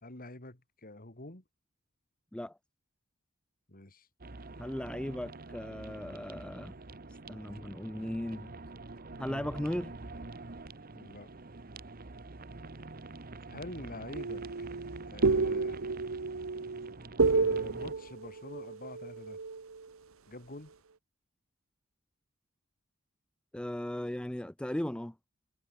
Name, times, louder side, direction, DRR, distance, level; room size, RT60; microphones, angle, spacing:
voice 1, 0.0-1.4 3.7-4.1 10.9-11.3 13.5-14.7 15.1-15.8 17.2-19.4 20.3-20.7, left 2 dB, 45° left, 3.3 m, -46 dB
sound 1, 4.2-17.9, right 3 dB, 45° right, 1.2 m, -47 dB
voice 2, 4.6-6.7 7.3-8.5 9.2-9.9 23.5-25.1, left 1 dB, 5° left, 0.4 m, -37 dB
sound 2, 14.2-19.8, right 4 dB, 75° right, 0.9 m, -30 dB
head